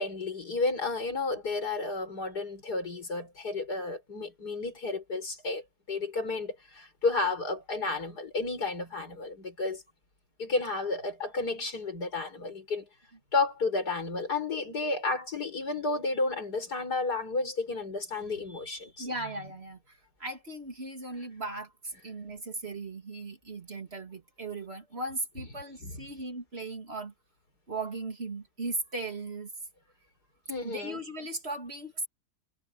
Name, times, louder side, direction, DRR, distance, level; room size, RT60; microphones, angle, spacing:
voice 1, 0.0-5.6 5.9-9.8 10.4-12.9 13.3-19.1 25.8-26.1 30.5-31.0, left 3 dB, 85° left, 5.9 m, -32 dB
voice 2, 19.0-27.1 27.7-29.5 30.6-32.1, right 2 dB, 40° right, 2.9 m, -37 dB
omnidirectional pair, 1.7 m